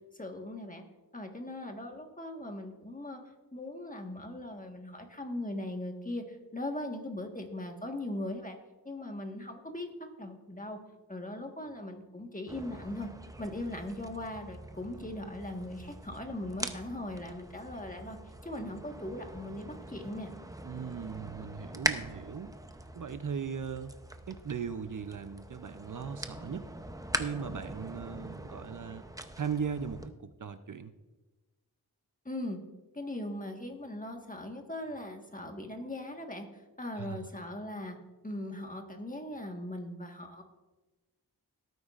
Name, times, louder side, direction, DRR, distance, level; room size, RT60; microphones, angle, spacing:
voice 1, 0.2-0.8 1.1-3.2 3.5-8.6 8.8-9.9 10.2-10.8 11.1-13.1 13.4-18.2 18.4-20.3 32.2-32.6 32.9-36.5 36.8-38.0 38.2-40.4, left 1 dB, 20° left, 3 dB, 1.5 m, -39 dB
sound 1, 12.5-30.1, right 1 dB, 10° right, 0.6 m, -42 dB
voice 2, 20.6-22.5 22.9-24.0 24.3-26.7 27.2-29.0 29.4-30.9 36.9-37.3, right 6 dB, 55° right, 10 dB, 0.6 m, -38 dB
18.0 x 9.2 x 2.5 m, 1.2 s
wide cardioid pair, 80°, 38 cm